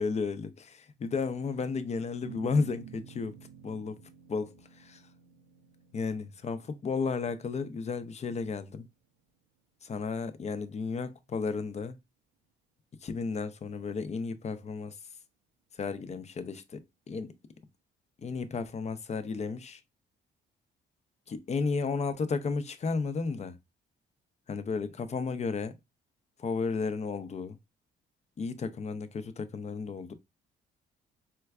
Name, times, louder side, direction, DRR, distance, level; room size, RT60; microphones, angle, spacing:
voice 1, 0.0-3.3 3.6-4.0 4.3-5.0 5.9-8.9 9.8-12.0 13.0-15.0 15.7-17.3 18.2-19.8 21.3-23.6 24.5-25.7 26.4-27.6 28.4-30.1, left 4 dB, 35° left, 0.5 m, -33 dB
sound 1, 2.2-8.8, right 8 dB, 90° right, 0.6 m, -51 dB
4.4 x 2.2 x 2.3 m
cardioid pair, 90°, 20 cm